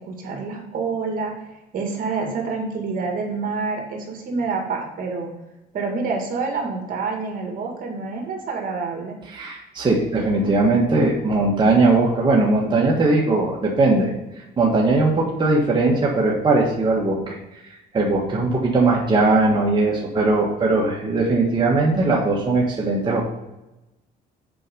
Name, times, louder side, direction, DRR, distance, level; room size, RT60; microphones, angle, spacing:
voice 1, 0.0-1.5 1.7-5.3 5.7-9.2, right 4 dB, 55° right, 1 dB, 2.2 m, -27 dB
voice 2, 9.3-14.1 14.6-17.4 17.9-23.2, right 3 dB, 25° right, -3 dB, 1.6 m, -19 dB
7.7 x 4.9 x 5.4 m, 0.96 s
cardioid pair, 110°, 17 cm